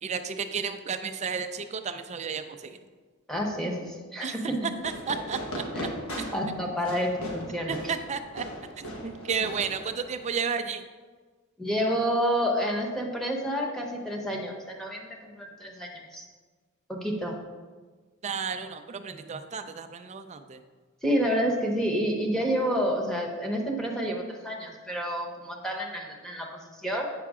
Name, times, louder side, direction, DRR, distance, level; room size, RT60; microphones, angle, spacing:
voice 1, 0.0-2.8 4.2-5.9 6.2-6.4 7.7-8.5 8.8-10.8 18.2-20.6, right 6 dB, 30° right, 8 dB, 0.4 m, -33 dB
voice 2, 3.3-4.7 5.8-7.8 11.6-16.2 16.9-17.4 21.0-27.1, equal, 5° left, -1 dB, 1.0 m, -29 dB
Fireworks, 4.8-10.3, equal, 80° left, 1.3 m, -38 dB
8.3 x 5.8 x 3.6 m, 1.4 s
head